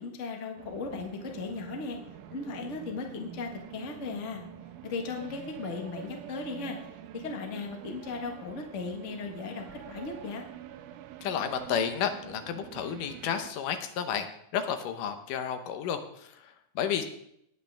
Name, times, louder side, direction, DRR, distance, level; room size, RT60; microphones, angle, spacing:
voice 1, 0.0-2.0 2.3-4.4 4.8-6.8 7.1-10.4, left 4 dB, 50° left, 3 dB, 0.9 m, -37 dB
sound 1, 0.6-13.5, right 10 dB, 80° right, 2.1 m, -46 dB
voice 2, 11.2-14.3 14.5-17.0, left 8 dB, 75° left, 8 dB, 2.4 m, -32 dB
19.0 x 8.1 x 3.4 m, 0.73 s
omnidirectional pair, 3.9 m